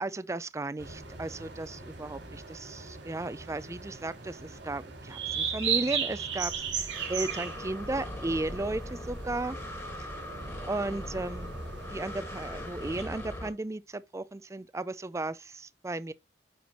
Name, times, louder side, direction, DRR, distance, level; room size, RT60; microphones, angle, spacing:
voice 1, 0.0-9.6 10.7-11.5 11.9-16.1, right 2 dB, 15° right, 0.4 m, -35 dB
sound 1, 0.8-13.0, right 6 dB, 90° right, 3.5 m, -37 dB
Breathing, 6.4-13.5, left 1 dB, 15° left, 1.8 m, -40 dB
9.3 x 4.5 x 3.0 m
head